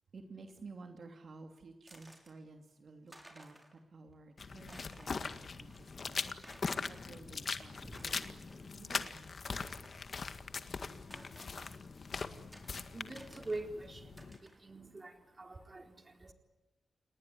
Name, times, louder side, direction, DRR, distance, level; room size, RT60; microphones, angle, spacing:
voice 1, 0.1-6.4 6.9-9.3, right 3 dB, 60° right, 5 dB, 2.9 m, -53 dB
sound 1, 1.9-2.3 2.8-2.9 3.1-3.8 4.1-4.2 4.6-5.2 5.7-5.8 6.4-7.0 7.7-8.6 8.9-9.0 9.5-10.0 11.1-11.7 12.5-12.7 13.2-13.7 14.2-14.6, right 1 dB, 10° right, 6.2 m, -55 dB
sound 2, 4.4-14.4, left 4 dB, 55° left, 1.8 m, -41 dB
voice 2, 12.1-16.3, right 2 dB, 30° right, 5 dB, 4.1 m, -46 dB
30.0 x 19.5 x 9.8 m, 1.0 s
cardioid pair, 75°, 0 cm